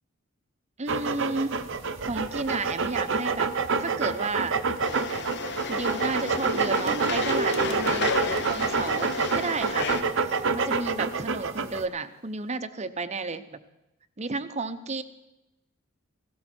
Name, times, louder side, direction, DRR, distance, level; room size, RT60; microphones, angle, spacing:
voice 1, 0.8-1.5 2.0-3.5 3.8-4.6 5.3-5.4 5.7-8.1 8.5-13.4 14.2-15.0, right 3 dB, 35° right, 10 dB, 0.8 m, -32 dB
sound 1, 0.9-11.8, right 4 dB, 65° right, 0.9 m, -27 dB
sound 2, 4.8-10.0, left 5 dB, 55° left, 1.1 m, -33 dB
sound 3, 6.5-11.5, right 3 dB, 85° right, 1.1 m, -36 dB
17.5 x 16.5 x 4.4 m, 0.92 s
head